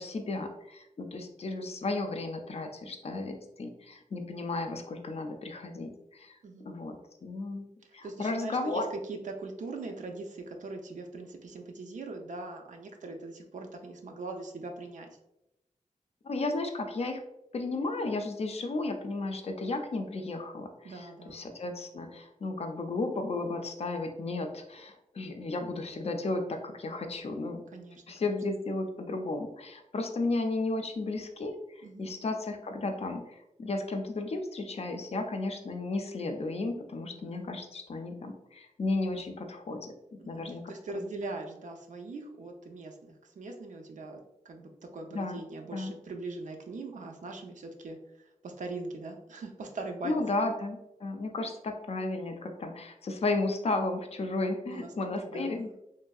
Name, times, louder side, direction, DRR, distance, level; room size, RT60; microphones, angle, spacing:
voice 1, 0.0-6.4 6.6-7.7 7.9-8.9 16.2-17.2 17.5-27.6 28.1-40.7 45.1-45.4 45.7-45.9 50.0-55.8, left 2 dB, 55° left, 5 dB, 0.4 m, -34 dB
voice 2, 8.0-15.1 20.8-21.4 27.7-28.3 31.8-32.1 37.1-37.4 40.2-44.2 44.4-50.2 54.7-55.7, right 3 dB, 75° right, 3 dB, 0.5 m, -41 dB
3.1 x 2.6 x 2.3 m, 0.87 s
wide cardioid pair, 105°, 13 cm